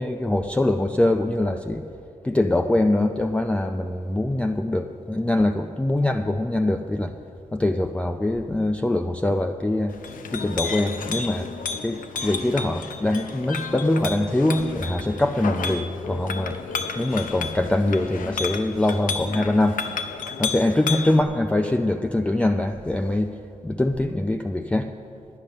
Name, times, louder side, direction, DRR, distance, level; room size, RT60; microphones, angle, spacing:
voice 1, 0.0-1.8 2.2-7.1 7.5-9.9 10.3-11.5 11.8-16.6 17.0-19.8 20.4-23.3 23.6-24.9, left 1 dB, 10° left, 5 dB, 0.4 m, -23 dB
Chink clink, 9.9-21.2, left 5 dB, 80° left, 0.7 m, -32 dB
10.5 x 10.0 x 6.5 m, 2.6 s
cardioid pair, 105°, 14 cm